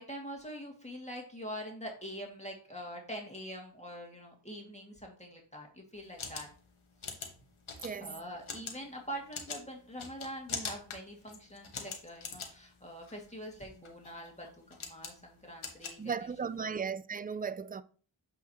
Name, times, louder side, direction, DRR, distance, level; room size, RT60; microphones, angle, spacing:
voice 1, 0.0-6.5 8.0-16.1 16.6-16.7, equal, 15° left, 2.2 m, -44 dB
sound 1, 6.0-16.6, left 5 dB, 80° left, 1.2 m, -44 dB
voice 2, 7.8-8.2 16.0-17.8, right 6 dB, 20° right, 0.4 m, -36 dB
8.2 x 4.8 x 2.9 m
cardioid pair, 40°, 48 cm